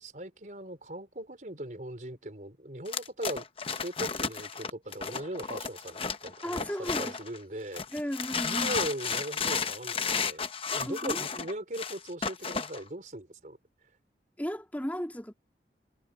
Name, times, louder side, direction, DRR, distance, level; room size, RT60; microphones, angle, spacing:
voice 1, 0.0-3.5 3.8-7.8 8.4-13.6, right 1 dB, 45° right, 4.1 m, -39 dB
sound 1, 2.9-7.4 7.7-12.8, left 5 dB, 30° left, 0.9 m, -33 dB
voice 2, 6.4-7.2 7.9-8.8 10.8-11.2 14.4-15.3, equal, 10° left, 3.3 m, -35 dB
head